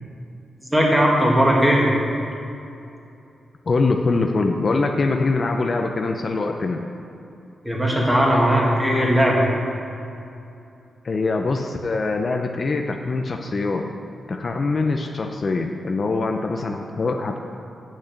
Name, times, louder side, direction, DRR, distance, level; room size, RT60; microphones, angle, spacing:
voice 1, 0.7-1.9 7.6-9.4, equal, 10° right, -3 dB, 2.0 m, -18 dB
voice 2, 3.7-6.8 11.0-13.8 14.3-17.4, left 3 dB, 40° left, 3 dB, 0.6 m, -23 dB
8.3 x 6.4 x 7.3 m, 2.7 s
cardioid pair, 105°, 0 cm